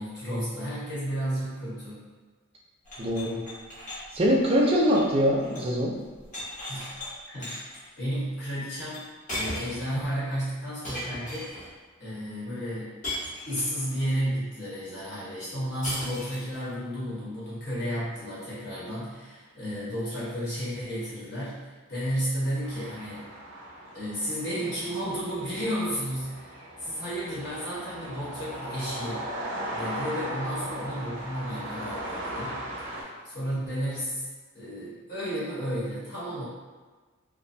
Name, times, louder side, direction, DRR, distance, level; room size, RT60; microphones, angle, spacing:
voice 1, 0.0-2.0 6.7-6.9 7.3-9.1 9.3-11.7 12.0-13.0 13.5-23.3 23.9-29.3 29.7-32.6 32.9-34.3 34.5-36.4, equal, 55° left, -9 dB, 1.1 m, -32 dB
sound 1, 2.8-5.8 6.0-7.1 7.4-7.8 8.9-9.0 9.3-9.9 10.8-11.7 13.0-13.9 15.8-16.6, left 1 dB, 40° left, 0.8 m, -37 dB
voice 2, 3.0-3.4 4.1-5.9, equal, 30° right, -2 dB, 0.4 m, -23 dB
sound 2, 22.6-33.0, right 1 dB, 85° right, 0.5 m, -38 dB
2.4 x 2.2 x 2.6 m, 1.4 s
head